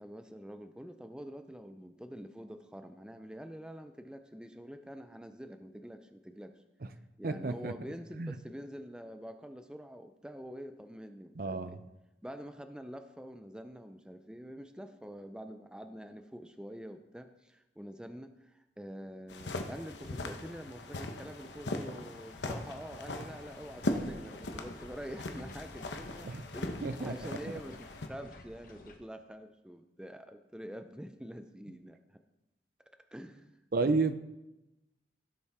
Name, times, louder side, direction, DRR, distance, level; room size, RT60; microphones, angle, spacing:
voice 1, 0.0-6.6 7.2-11.8 12.2-32.2 33.1-33.9, equal, 5° right, 8 dB, 0.5 m, -46 dB
voice 2, 7.2-7.7 8.2-8.3 11.4-11.8 26.2-26.4 26.8-27.3 33.7-34.1, right 3 dB, 55° right, 11 dB, 0.6 m, -31 dB
sound 1, 19.3-28.1, left 2 dB, 90° left, 1.0 m, -39 dB
sound 2, 23.2-29.0, left 1 dB, 50° left, 1.1 m, -53 dB
16.0 x 6.9 x 3.6 m, 0.95 s
head